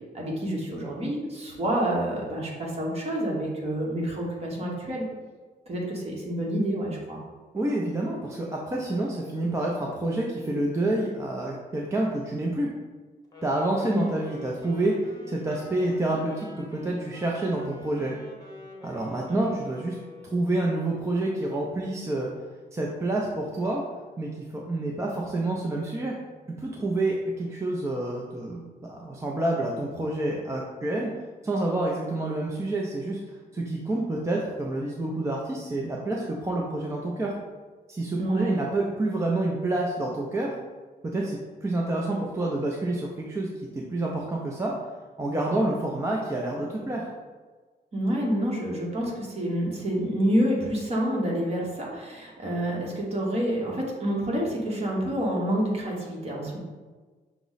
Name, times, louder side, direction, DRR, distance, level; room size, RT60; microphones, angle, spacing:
voice 1, 0.1-5.0 5.7-7.2 13.9-14.0 19.3-19.5 38.2-38.5 47.9-56.6, right 1 dB, 35° right, -3 dB, 1.1 m, -28 dB
voice 2, 7.5-12.7 13.4-18.1 18.8-20.0 20.2-22.3 22.7-23.8 24.2-26.1 26.6-31.1 31.4-37.3 37.9-40.5 41.0-43.5 43.7-44.7 45.2-47.1, right 2 dB, 15° right, -3 dB, 0.4 m, -28 dB
Wind instrument woodwind instrument, 13.2-20.5, left 1 dB, 20° left, 0.9 m, -47 dB
5.7 x 2.0 x 3.9 m, 1.4 s
wide cardioid pair, 135°, 17 cm